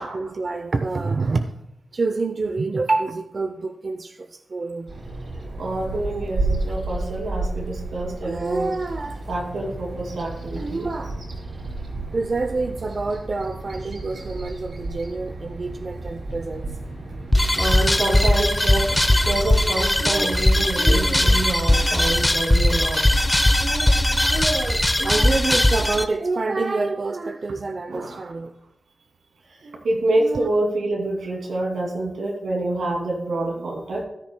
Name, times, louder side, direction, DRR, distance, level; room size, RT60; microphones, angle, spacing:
voice 1, 0.0-1.6 1.9-5.0 6.7-6.8 8.2-9.2 10.5-11.2 12.1-16.8 20.0-21.5 23.6-28.5 29.6-29.8 30.2-30.5, right 3 dB, 50° right, 0.6 m, -27 dB
Bird vocalization bird call bird song, 4.9-21.3, right 2 dB, 65° right, 4.3 m, -33 dB
voice 2, 5.6-8.8 9.3-10.8 17.6-19.0 19.3-23.0 27.9-28.2 29.8-34.0, right 2 dB, 90° right, 2.5 m, -26 dB
sound 1, 17.3-26.0, left 1 dB, 15° left, 0.8 m, -19 dB
14.5 x 13.0 x 2.2 m
wide cardioid pair, 85°, 0 cm